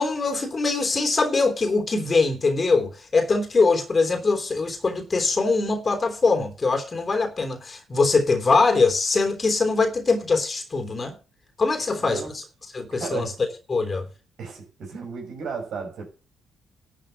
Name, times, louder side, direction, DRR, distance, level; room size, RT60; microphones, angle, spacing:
voice 1, 0.0-11.1 11.6-12.2 12.7-13.3 13.7-14.1, left 3 dB, 35° left, 3.2 m, -22 dB
voice 2, 11.8-12.3 12.9-13.4 14.4-16.1, right 5 dB, 60° right, 6.0 m, -34 dB
12.0 x 6.1 x 7.6 m
figure-of-eight pair, 40°, 0 cm